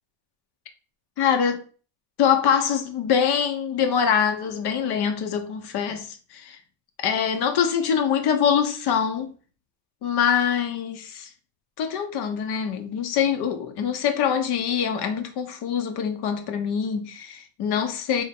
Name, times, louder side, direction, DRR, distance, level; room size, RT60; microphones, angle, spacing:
voice 1, 1.2-1.6 2.2-6.6 7.0-9.3 10.0-11.3 11.8-18.2, left 7 dB, 60° left, 0.7 m, -24 dB
3.5 x 2.0 x 4.2 m
cardioid pair, 180°, 44 cm